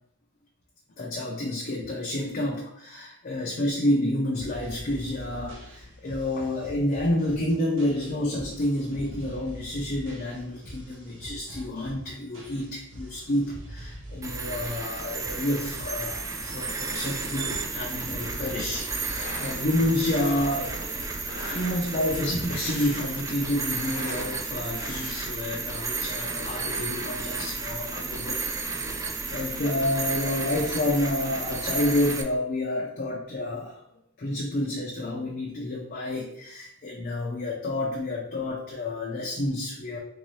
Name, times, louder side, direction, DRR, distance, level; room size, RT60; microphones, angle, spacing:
voice 1, 1.0-21.2 21.5-33.8 34.2-40.0, left 1 dB, 45° left, -2 dB, 0.6 m, -29 dB
sound 1, 4.3-22.6, equal, 65° right, 1.0 m, -44 dB
sound 2, 14.2-32.2, right 4 dB, 15° right, 0.3 m, -33 dB
sound 3, 19.0-19.6 20.0-20.5 21.1-22.0 22.4-23.3 23.6-24.3 24.8-25.5, left 2 dB, 75° left, 1.0 m, -40 dB
3.7 x 2.7 x 3.1 m, 0.77 s
head